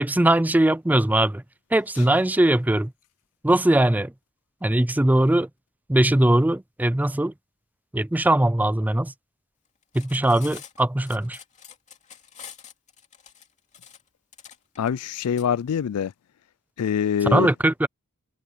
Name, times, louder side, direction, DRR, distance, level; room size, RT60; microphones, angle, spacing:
voice 1, 0.0-1.4 1.7-2.9 3.4-4.1 4.6-5.5 5.9-7.3 7.9-9.1 9.9-11.4 17.2-17.9, right 1 dB, 5° right, 0.4 m, -20 dB
Cutlery silverware, 9.8-15.5, left 8 dB, 35° left, 2.5 m, -46 dB
voice 2, 14.8-16.1 16.8-17.5, left 8 dB, 80° left, 0.4 m, -24 dB
head